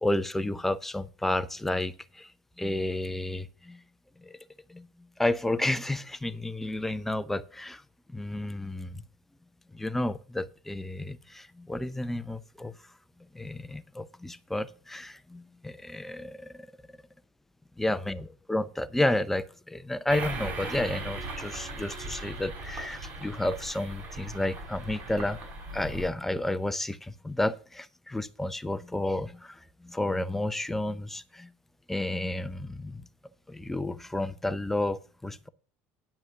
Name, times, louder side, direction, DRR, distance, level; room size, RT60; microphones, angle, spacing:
voice 1, 0.0-2.3 2.6-3.8 4.2-4.4 4.7-4.9 5.2-7.8 8.1-9.0 9.7-12.7 13.3-16.7 17.8-25.4 25.7-31.5 31.9-33.1 33.5-35.5, left 1 dB, 5° left, 0.6 m, -31 dB
sound 1, 20.1-26.1, right 2 dB, 40° right, 5.8 m, -38 dB
9.4 x 5.8 x 6.8 m
supercardioid pair, 125°, 5 cm